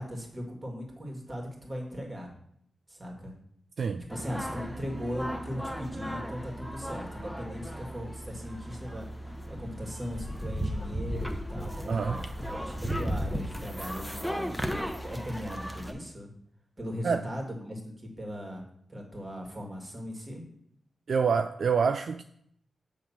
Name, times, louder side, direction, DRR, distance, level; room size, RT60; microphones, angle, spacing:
voice 1, 0.0-2.3 2.9-3.3 4.1-12.2 12.5-14.6 15.0-16.3 16.8-18.6 18.9-20.4, equal, 35° right, 2.3 m, -38 dB
sound 1, 4.1-15.9, equal, 5° left, 0.9 m, -36 dB
voice 2, 11.9-12.2 17.0-17.2 21.1-22.2, right 5 dB, 70° right, 0.3 m, -26 dB
7.1 x 3.5 x 5.8 m
cardioid pair, 45°, 0 cm